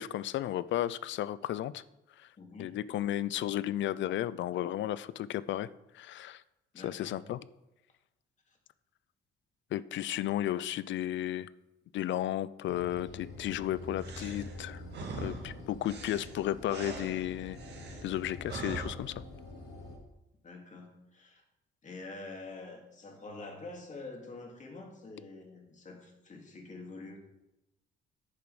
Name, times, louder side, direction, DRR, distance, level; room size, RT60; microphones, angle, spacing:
voice 1, 0.0-1.8 2.2-2.3 2.6-5.7 5.9-6.4 6.8-7.4 9.7-11.5 11.9-14.8 15.2-17.6 18.0-19.2, left 12 dB, 70° left, 18 dB, 0.5 m, -33 dB
voice 2, 2.4-2.8 6.7-7.2 8.5-8.6 20.4-21.4 21.8-27.2, left 3 dB, 40° left, 1 dB, 2.6 m, -46 dB
sound 1, 12.6-20.0, left 2 dB, 85° left, 3.1 m, -46 dB
sound 2, 14.0-18.9, right 3 dB, 60° right, 2.0 m, -43 dB
10.0 x 6.8 x 4.9 m, 0.94 s
cardioid pair, 90°, 20 cm